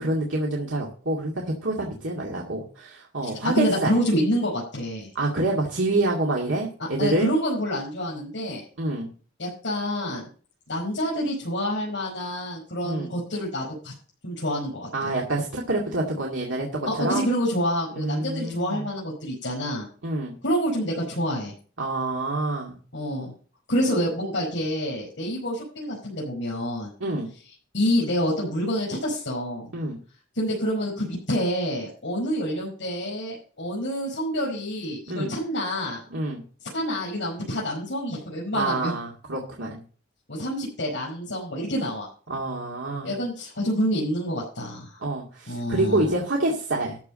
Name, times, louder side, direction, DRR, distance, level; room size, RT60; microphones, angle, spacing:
voice 1, 0.0-4.0 5.1-7.3 8.8-9.1 12.8-13.1 14.9-17.3 18.0-18.9 20.0-20.4 21.8-22.7 27.0-27.3 29.7-30.0 35.1-35.3 36.1-36.4 38.5-39.8 42.3-43.1 45.0-47.0, right 2 dB, 90° right, -1 dB, 2.2 m, -27 dB
voice 2, 3.2-5.1 6.8-8.6 9.4-10.2 10.7-13.9 14.2-15.1 16.9-19.9 20.4-21.5 22.9-23.3 23.7-26.9 27.7-29.7 30.3-36.0 36.6-38.9 40.3-42.1 43.0-45.0 45.5-46.1, equal, 70° left, -5 dB, 5.3 m, -27 dB
13.5 x 4.8 x 7.5 m, 0.40 s
head